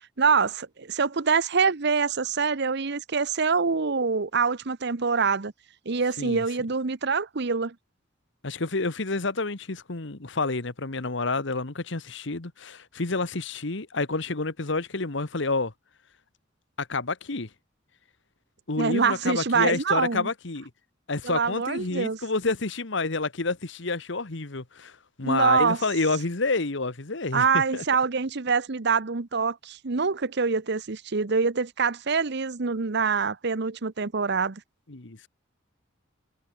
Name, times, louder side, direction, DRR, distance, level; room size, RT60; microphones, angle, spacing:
voice 1, 0.2-5.5 5.9-7.7 18.8-20.3 21.2-22.2 25.2-25.8 27.3-34.6, right 5 dB, 60° right, 0.9 m, -25 dB
voice 2, 8.4-15.7 16.8-17.5 18.7-20.7 21.1-27.8 34.9-35.3, left 3 dB, 65° left, 1.5 m, -29 dB
head